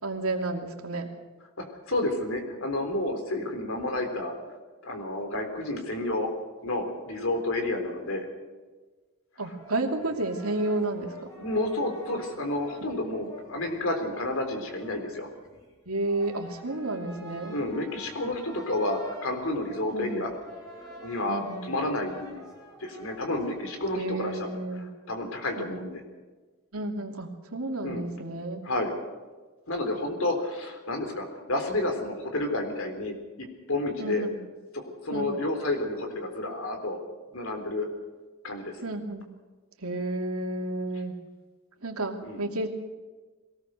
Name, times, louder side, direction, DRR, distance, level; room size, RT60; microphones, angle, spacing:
voice 1, 0.0-1.1 9.4-11.1 15.9-17.6 19.9-20.3 21.3-21.6 23.9-24.9 25.6-25.8 26.7-28.7 34.0-34.4 35.1-35.5 38.8-39.3 39.8-41.2 41.8-42.7, right 2 dB, 85° right, 3 dB, 2.8 m, -31 dB
voice 2, 1.6-4.3 4.8-6.3 6.6-8.3 11.4-15.3 17.5-20.3 21.0-22.4 22.8-26.0 27.8-28.1 28.6-28.9 29.7-34.3 34.7-37.0 37.3-37.9 38.4-38.7 42.2-42.5, left 2 dB, 70° left, 5 dB, 3.9 m, -30 dB
sound 1, 9.6-24.6, left 1 dB, 15° left, 3.9 m, -48 dB
22.0 x 18.5 x 6.6 m, 1.3 s
head